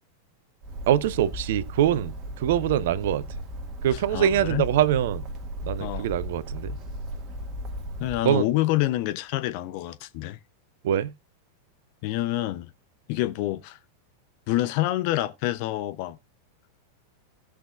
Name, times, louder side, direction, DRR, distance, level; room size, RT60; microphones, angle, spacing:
Bird, 0.6-8.2, equal, 30° right, 1.7 m, -36 dB
voice 1, 0.9-3.3 3.8-5.3 5.6-6.8 8.2-8.5 10.8-11.1, right 10 dB, 55° right, 0.6 m, -24 dB
voice 2, 4.1-4.7 5.8-6.1 8.0-10.4 12.0-12.7 13.1-13.8 14.5-16.2, left 16 dB, 45° left, 0.7 m, -27 dB
17.0 x 5.9 x 2.4 m
figure-of-eight pair, 90°, 0 cm